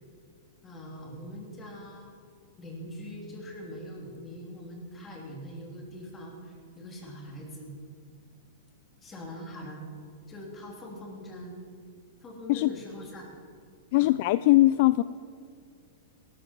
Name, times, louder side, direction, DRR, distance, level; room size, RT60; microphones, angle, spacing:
voice 1, 0.6-2.1 2.6-7.7 9.0-9.8 10.3-11.6 12.2-13.3 14.0-14.2, equal, 20° left, -1 dB, 3.3 m, -42 dB
voice 2, 13.9-15.0, left 17 dB, 50° left, 15 dB, 0.3 m, -21 dB
17.5 x 13.5 x 4.6 m, 2.3 s
hypercardioid pair, 145°, 0 cm